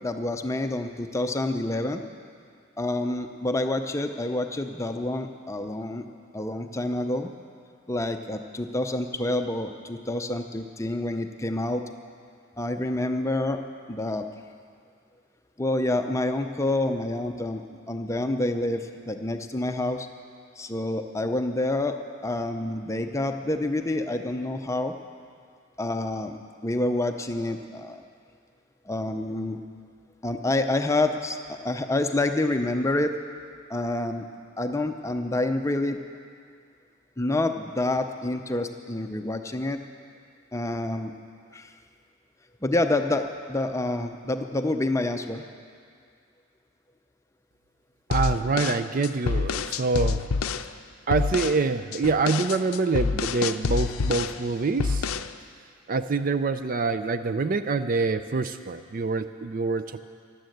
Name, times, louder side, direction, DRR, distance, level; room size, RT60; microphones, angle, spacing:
voice 1, 0.0-2.0 2.8-6.1 6.3-7.3 7.9-11.8 12.6-13.6 13.9-14.3 15.6-20.1 20.6-22.0 22.2-24.9 25.8-28.0 28.9-29.6 30.2-33.1 33.7-34.3 34.6-36.0 37.2-39.8 40.5-41.1 41.5-41.7 42.6-45.4, left 2 dB, 15° left, 6 dB, 0.6 m, -28 dB
sound 1, 48.1-50.7 51.1-51.6 51.9-54.4 54.8-55.3, left 4 dB, 75° left, 0.5 m, -27 dB
voice 2, 48.1-50.2 51.1-55.1 55.9-60.0, right 4 dB, 40° right, 11 dB, 0.4 m, -26 dB
14.0 x 11.5 x 7.8 m, 2.2 s
head